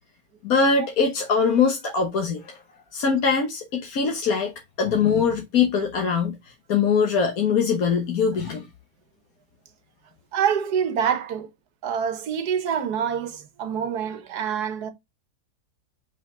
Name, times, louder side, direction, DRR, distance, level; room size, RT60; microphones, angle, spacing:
voice 1, 0.4-2.6 2.9-4.5 4.8-6.4 6.7-8.7, left 5 dB, 60° left, 1.6 m, -22 dB
voice 2, 10.3-11.5 11.8-14.9, right 8 dB, 70° right, 1.5 m, -26 dB
5.7 x 5.4 x 3.8 m
omnidirectional pair, 1.8 m